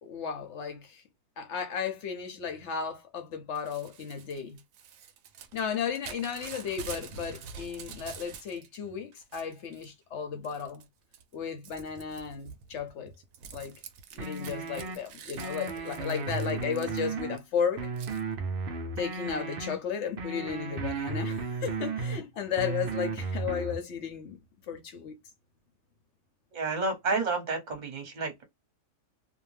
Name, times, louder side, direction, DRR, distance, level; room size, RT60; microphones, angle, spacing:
voice 1, 0.0-1.0 1.4-4.6 5.5-10.8 11.3-13.1 13.5-13.7 14.1-17.9 19.0-24.4 24.7-25.2, left 7 dB, 60° left, 0.7 m, -34 dB
Crumpling crinkling / Tearing, 3.5-8.8 9.1-9.9 10.4-10.8 11.1-17.4 18.0-18.2, right 6 dB, 70° right, 0.9 m, -47 dB
sound 1, 14.2-15.0 15.4-17.4 17.8-19.8 20.2-22.2 22.6-23.8, right 4 dB, 85° right, 0.5 m, -34 dB
voice 2, 26.5-28.4, right 3 dB, 35° right, 0.9 m, -30 dB
2.6 x 2.1 x 3.1 m
omnidirectional pair, 1.7 m